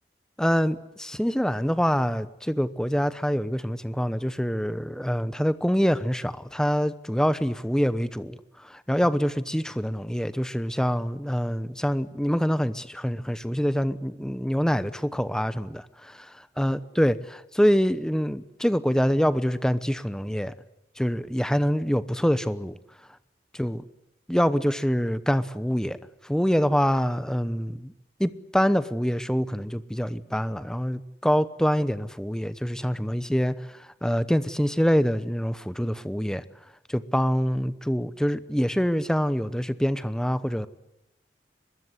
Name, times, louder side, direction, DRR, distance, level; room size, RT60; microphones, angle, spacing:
voice 1, 0.4-8.4 8.7-15.9 16.6-20.5 21.0-22.8 23.6-23.8 24.3-26.0 26.3-27.9 28.2-33.5 34.0-36.4 36.9-40.7, equal, 5° left, 14 dB, 0.9 m, -25 dB
23.5 x 21.5 x 9.8 m, 0.87 s
head